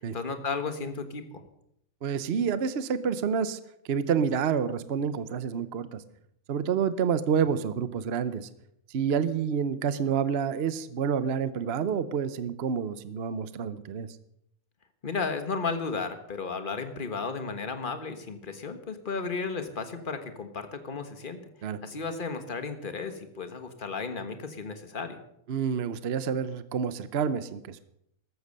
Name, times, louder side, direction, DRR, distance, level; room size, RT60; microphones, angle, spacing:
voice 1, 0.1-1.4 15.0-25.2, left 4 dB, 35° left, 8 dB, 1.6 m, -34 dB
voice 2, 2.0-3.6 3.9-6.0 6.5-8.5 8.9-14.1 21.6-21.8 25.5-27.8, right 7 dB, 50° right, 14 dB, 0.9 m, -28 dB
14.5 x 13.0 x 6.6 m, 0.75 s
omnidirectional pair, 1.5 m